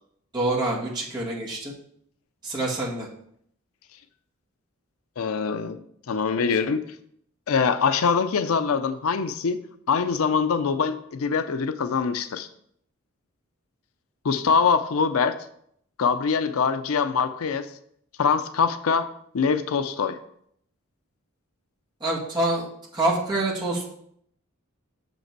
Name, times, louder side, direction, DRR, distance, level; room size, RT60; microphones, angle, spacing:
voice 1, 0.3-1.7 2.4-3.1 22.0-22.7 22.9-23.8, right 2 dB, 20° right, -4 dB, 1.8 m, -26 dB
voice 2, 5.2-5.8 6.1-6.8 7.5-12.5 14.2-15.4 16.0-17.7 18.2-19.1 19.3-20.2, left 5 dB, 75° left, 11 dB, 0.5 m, -23 dB
6.7 x 5.3 x 4.6 m, 0.69 s
head